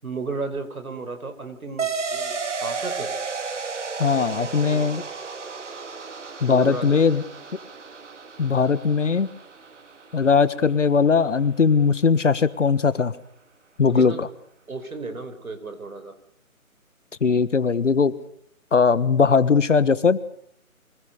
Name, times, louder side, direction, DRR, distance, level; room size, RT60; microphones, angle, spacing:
voice 1, 0.0-3.1 4.1-5.0 6.4-7.0 13.8-14.2 14.7-16.2, right 3 dB, 75° right, 8 dB, 4.9 m, -34 dB
sound 1, 1.8-10.8, right 5 dB, 55° right, 2.1 m, -33 dB
voice 2, 4.0-5.0 6.4-7.2 8.4-9.3 10.1-13.1 13.8-14.3 17.2-18.1 18.7-20.2, left 5 dB, 55° left, 15 dB, 1.5 m, -19 dB
24.5 x 20.5 x 6.8 m, 0.68 s
figure-of-eight pair, 170°, 43 cm